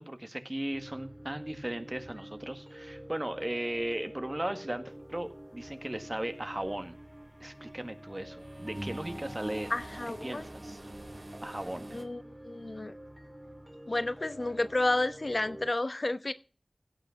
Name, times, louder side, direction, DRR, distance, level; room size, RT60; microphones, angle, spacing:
voice 1, 0.0-6.9 7.4-9.7 10.2-10.8 11.4-11.9, right 1 dB, 30° right, 1.7 m, -37 dB
sound 1, 0.7-15.7, equal, 15° right, 2.2 m, -48 dB
sound 2, 5.6-5.9 6.4-7.7 8.1-12.0, right 1 dB, 55° right, 2.1 m, -45 dB
voice 2, 9.7-10.5 11.9-12.9 13.9-16.3, left 2 dB, 60° left, 1.0 m, -31 dB
16.5 x 6.2 x 5.9 m
wide cardioid pair, 50°, 0 cm